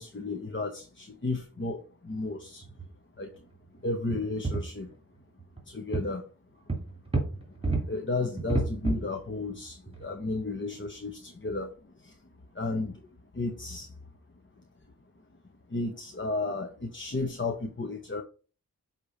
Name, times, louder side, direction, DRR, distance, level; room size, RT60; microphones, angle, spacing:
voice 1, 0.0-2.7 3.2-3.4 3.7-5.0 5.6-6.6 7.5-14.0 14.6-14.7 15.7-18.2, left 3 dB, 35° left, 5 dB, 0.8 m, -34 dB
sound 1, 2.1-2.3 2.6-2.8 3.2-3.3 4.1-4.9 5.4-5.6 5.9-6.1 6.7-7.8 8.4-9.2 9.5-9.6 9.9-10.1 10.7-10.8, right 2 dB, 15° right, 2.5 m, -30 dB
8.2 x 2.9 x 4.8 m, 0.36 s
wide cardioid pair, 55°, 34 cm